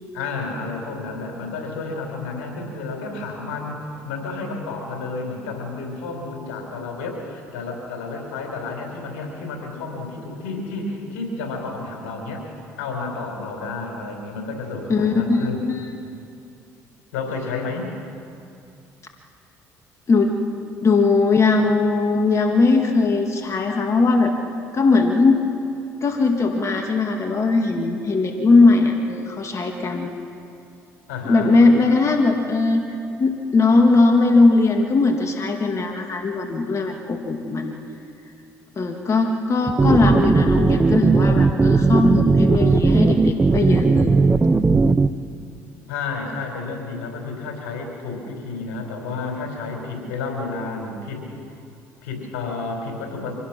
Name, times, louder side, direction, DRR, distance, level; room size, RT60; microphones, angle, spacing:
voice 1, 0.1-12.5 12.8-15.7 17.1-17.9 31.1-31.5 45.9-51.3 52.0-53.4, left 3 dB, 85° left, 1 dB, 4.4 m, -31 dB
voice 2, 14.9-15.9 20.1-20.3 20.8-24.4 24.7-25.4 26.0-30.1 31.3-32.9 33.2-37.7 38.8-44.2, left 3 dB, 40° left, 3 dB, 2.0 m, -19 dB
sound 1, 39.7-45.1, right 4 dB, 20° right, 0.7 m, -17 dB
25.0 x 17.5 x 6.1 m, 2.5 s
hypercardioid pair, 65°, 8 cm